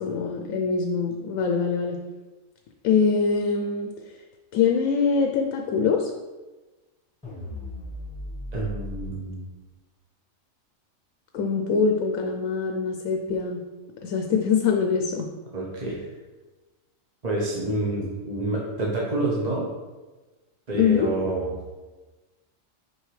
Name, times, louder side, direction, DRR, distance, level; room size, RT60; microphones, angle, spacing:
voice 1, 0.0-2.0 2.8-3.9 4.5-6.1 11.3-13.6 14.0-15.3 20.7-21.1, left 5 dB, 80° left, 3 dB, 1.0 m, -23 dB
sound 1, 7.2-9.1, left 2 dB, 5° left, 1.1 m, -36 dB
voice 2, 8.5-9.5 15.5-16.0 17.2-19.7 20.7-21.6, right 2 dB, 35° right, -4 dB, 0.9 m, -28 dB
6.3 x 4.8 x 3.2 m, 1.2 s
omnidirectional pair, 1.4 m